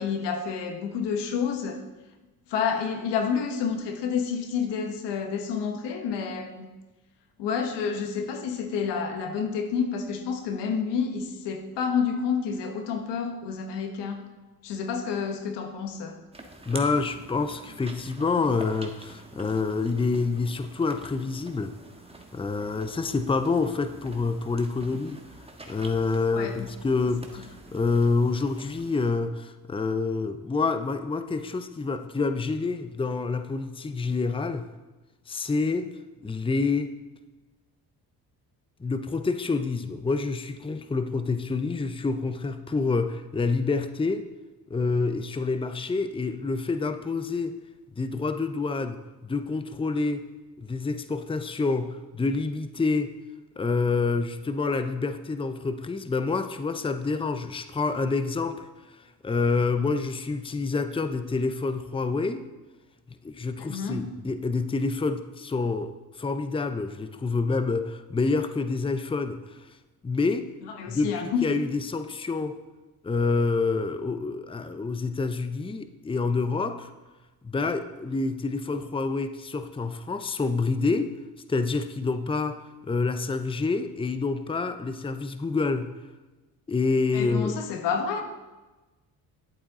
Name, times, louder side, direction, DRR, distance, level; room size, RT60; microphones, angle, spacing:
voice 1, 0.0-1.8 2.5-6.7 7.4-14.2 14.6-16.2 26.3-26.7 63.6-64.0 70.6-71.5 87.1-88.2, left 6 dB, 90° left, 5 dB, 1.3 m, -29 dB
sound 1, 16.3-29.1, right 2 dB, 15° right, 1.4 m, -47 dB
voice 2, 16.7-21.7 22.3-25.2 25.7-34.7 35.3-35.9 36.2-36.9 38.8-44.3 44.7-47.6 48.0-50.3 50.6-53.1 53.6-62.4 63.2-69.7 70.0-70.5 70.9-72.6 73.0-76.9 77.4-81.1 81.5-85.9 86.7-87.6, left 4 dB, 15° left, 10 dB, 0.6 m, -27 dB
11.0 x 8.6 x 3.8 m, 1.1 s
supercardioid pair, 70°, 40 cm